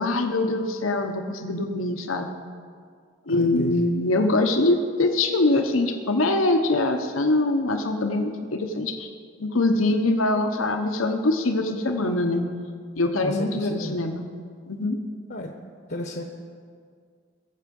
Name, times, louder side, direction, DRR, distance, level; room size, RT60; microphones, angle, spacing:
voice 1, 0.0-2.3 3.3-9.1 9.4-12.5 13.0-14.2 14.7-15.0, left 2 dB, 90° left, 5 dB, 1.0 m, -23 dB
voice 2, 3.3-3.9 13.2-13.9 15.3-15.5 15.9-16.2, left 1 dB, 50° left, 3 dB, 0.9 m, -33 dB
21.0 x 7.6 x 5.4 m, 2.1 s
head